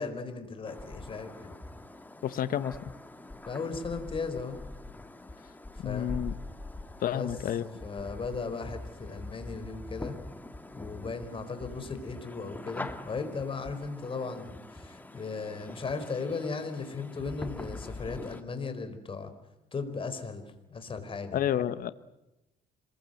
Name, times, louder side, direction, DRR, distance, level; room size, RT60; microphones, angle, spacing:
voice 1, 0.0-1.5 3.5-4.6 5.8-6.1 7.1-7.3 7.6-10.1 10.7-19.3 19.7-21.5, left 4 dB, 30° left, 9 dB, 4.5 m, -36 dB
sound 1, 0.6-18.4, left 2 dB, 10° left, 2.1 m, -44 dB
voice 2, 2.2-2.8 5.8-6.3 7.0-7.6 21.3-21.9, left 10 dB, 55° left, 13 dB, 1.2 m, -30 dB
26.5 x 21.5 x 7.9 m, 0.93 s
cardioid pair, 110°, 17 cm